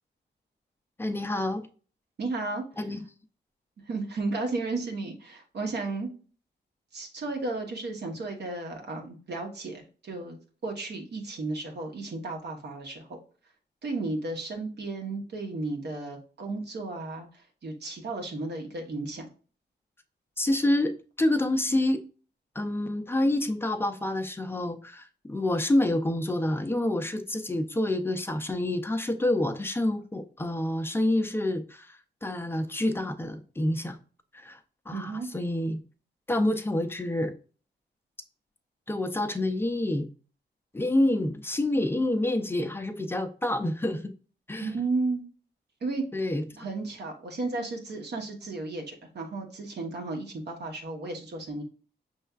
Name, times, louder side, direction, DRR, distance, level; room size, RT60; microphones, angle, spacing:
voice 1, 1.0-1.7 2.8-3.0 20.4-22.0 22.6-34.0 34.3-34.6 34.9-35.8 36.3-37.3 38.9-40.1 40.7-44.1 44.5-44.7 46.1-46.4, left 1 dB, 10° left, 0.4 m, -27 dB
voice 2, 2.2-2.6 3.9-6.1 6.9-10.4 10.6-13.2 13.8-19.3 34.9-35.3 44.6-45.2 45.8-46.0 46.6-51.6, right 3 dB, 65° right, 1.0 m, -33 dB
5.4 x 3.2 x 2.3 m
wide cardioid pair, 115°, 19 cm